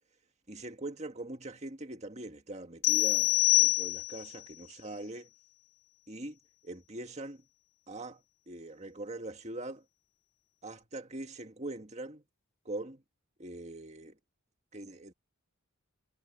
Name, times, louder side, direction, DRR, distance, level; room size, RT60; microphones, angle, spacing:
voice 1, 0.5-5.3 6.1-7.4 7.9-9.8 10.6-12.2 12.7-13.0 13.4-14.2 14.7-15.1, right 2 dB, 30° right, 1.9 m, -42 dB
sound 1, 2.8-4.4, left 24 dB, 55° left, 1.9 m, -25 dB
head